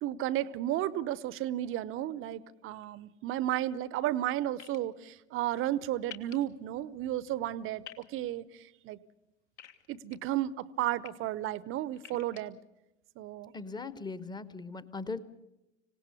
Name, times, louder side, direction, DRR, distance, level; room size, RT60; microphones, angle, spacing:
voice 1, 0.0-9.0 9.9-12.6 13.2-13.5, right 13 dB, 30° right, 19 dB, 0.8 m, -33 dB
sound 1, 4.6-4.8 6.1-6.3 7.8-8.0 9.6-10.2 10.8-11.1 12.0-12.4, left 11 dB, 60° left, 1.8 m, -47 dB
voice 2, 13.5-15.2, left 3 dB, 10° left, 16 dB, 1.0 m, -39 dB
26.0 x 18.0 x 7.0 m, 0.93 s
figure-of-eight pair, 80°, 40 cm